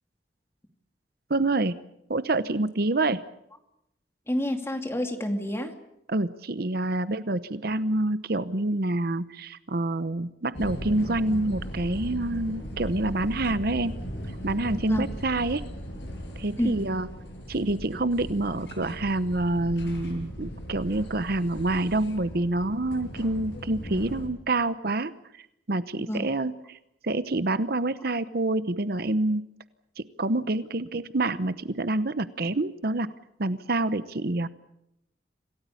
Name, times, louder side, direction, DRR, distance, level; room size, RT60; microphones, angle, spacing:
voice 1, 1.3-1.8 2.1-3.2 6.1-13.9 14.4-15.7 16.4-17.1 17.5-25.1 25.7-26.8 27.0-29.4 30.0-33.1 33.4-34.5, right 2 dB, 60° right, 14 dB, 0.9 m, -27 dB
voice 2, 4.3-5.7 14.9-15.1 16.6-16.7 26.1-26.3, left 1 dB, 15° left, 5 dB, 2.6 m, -28 dB
sound 1, 10.5-24.3, equal, 70° left, 6.6 m, -38 dB
27.0 x 17.5 x 8.5 m, 0.80 s
head